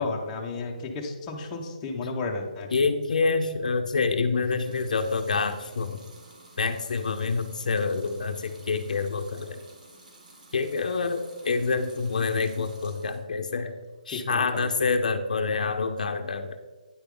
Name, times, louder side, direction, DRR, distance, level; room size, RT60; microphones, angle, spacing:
voice 1, 0.0-2.7 14.1-14.7, left 3 dB, 15° left, -1 dB, 1.0 m, -33 dB
voice 2, 2.7-6.0 6.6-9.6 10.5-13.7 14.1-16.7, left 4 dB, 65° left, 8 dB, 0.8 m, -27 dB
Water tap faucet / Sink (filling or washing) / Liquid, 4.4-13.3 13.7-14.4, right 2 dB, 65° right, 2.8 m, -52 dB
9.7 x 6.9 x 3.9 m, 1.3 s
hypercardioid pair, 165°, 5 cm